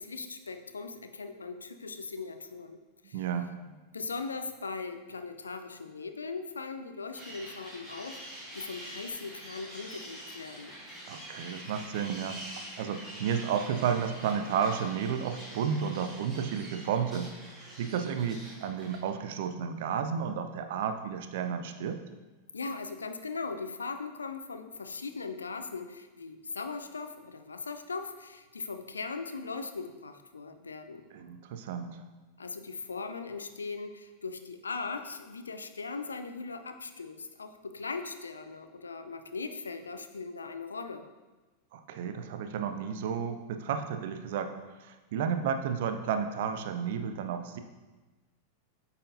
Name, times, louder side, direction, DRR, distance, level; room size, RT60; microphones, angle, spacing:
voice 1, 0.0-3.2 3.9-10.8 22.5-31.1 32.4-41.1, left 4 dB, 75° left, 8 dB, 0.4 m, -39 dB
voice 2, 3.1-3.8 11.1-17.3 17.6-22.0 31.1-32.0 41.7-44.5 44.8-47.6, right 7 dB, 55° right, 8 dB, 0.4 m, -32 dB
sound 1, 7.1-19.0, right 1 dB, 5° right, 1.8 m, -46 dB
8.5 x 4.1 x 2.7 m, 1.2 s
figure-of-eight pair, 90°, 0 cm